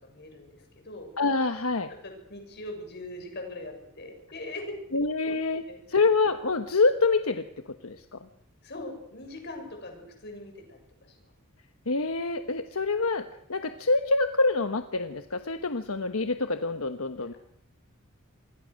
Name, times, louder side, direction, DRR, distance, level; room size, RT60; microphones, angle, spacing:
voice 1, 0.0-1.1 2.0-5.3 5.7-5.8 8.6-11.3 17.2-17.4, left 1 dB, 50° left, 4 dB, 7.1 m, -41 dB
voice 2, 1.2-1.9 4.9-5.6 5.9-7.4 7.8-8.2 11.9-17.3, left 3 dB, 80° left, 8 dB, 1.2 m, -26 dB
27.5 x 22.0 x 6.5 m, 0.73 s
head